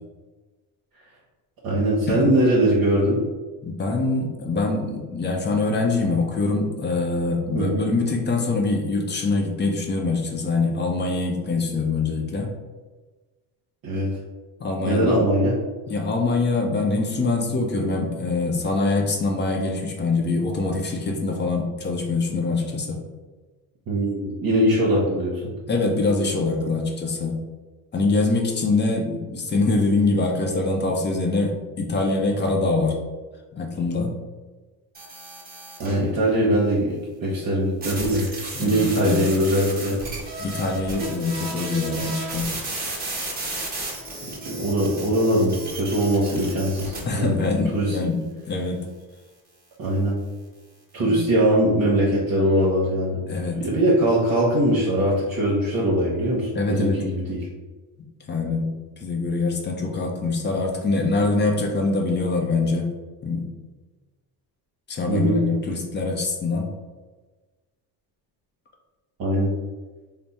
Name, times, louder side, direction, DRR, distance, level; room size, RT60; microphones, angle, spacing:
voice 1, 1.6-3.2 7.5-7.8 13.8-14.1 14.8-15.6 23.9-25.5 35.8-38.3 38.6-40.0 44.4-47.4 47.7-48.0 49.8-50.2 50.9-53.2 53.5-57.5 65.1-65.4 69.2-69.5, right 1 dB, 55° right, -5 dB, 0.9 m, -21 dB
voice 2, 3.6-12.5 14.6-15.2 15.9-23.0 25.7-27.3 27.9-33.0 33.5-34.1 38.5-39.2 40.4-42.5 47.0-48.2 48.5-48.8 51.0-51.2 53.3-53.6 56.5-57.0 58.3-58.7 59.0-62.9 63.2-63.5 64.9-66.7, left 3 dB, 25° left, 2 dB, 0.6 m, -24 dB
sound 1, 34.9-36.0 37.8-47.0, right 2 dB, 20° right, 1.1 m, -33 dB
3.4 x 2.0 x 4.1 m, 1.3 s
cardioid pair, 125°, 41 cm